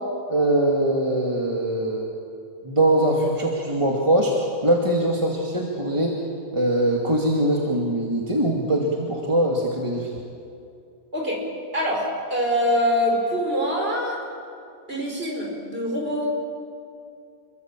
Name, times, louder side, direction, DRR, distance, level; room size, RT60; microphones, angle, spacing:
voice 1, 0.3-2.1 2.6-4.3 4.6-6.2 6.5-10.1, right 1 dB, 20° right, -2 dB, 2.4 m, -22 dB
voice 2, 11.1-11.4 11.7-14.2 14.9-16.3, equal, 35° right, -1 dB, 5.7 m, -24 dB
28.0 x 22.5 x 7.6 m, 2.5 s
omnidirectional pair, 1.6 m